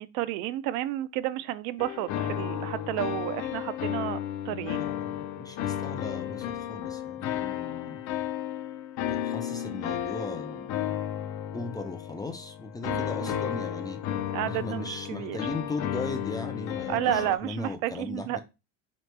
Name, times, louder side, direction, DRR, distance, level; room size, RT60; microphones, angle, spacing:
voice 1, 0.0-4.2 4.5-4.9 12.8-13.5 14.3-15.4 16.9-18.4, right 14 dB, 75° right, 0.5 m, -31 dB
sound 1, 1.8-17.4, left 10 dB, 55° left, 0.6 m, -33 dB
voice 2, 4.5-8.0 9.1-10.9 11.5-14.0 14.5-18.4, left 3 dB, 10° left, 0.4 m, -38 dB
3.9 x 3.0 x 3.3 m
cardioid pair, 115°, 33 cm